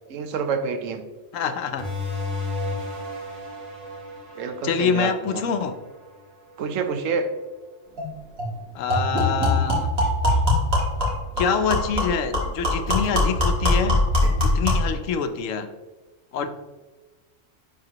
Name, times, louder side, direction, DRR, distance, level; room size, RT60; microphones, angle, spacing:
voice 1, 0.1-1.0 4.4-5.4 6.6-7.3, right 5 dB, 90° right, 8 dB, 1.1 m, -27 dB
voice 2, 1.3-1.9 4.6-5.8 8.7-9.9 11.4-14.0 14.4-15.7 16.3-16.5, left 6 dB, 85° left, 8 dB, 1.0 m, -25 dB
sound 1, 1.8-7.0, left 2 dB, 70° right, 1.8 m, -34 dB
sound 2, 8.0-8.1 8.4-8.5 8.9-14.9, left 1 dB, 50° right, 2.2 m, -22 dB
10.5 x 3.7 x 2.9 m, 1.3 s
omnidirectional pair, 1.3 m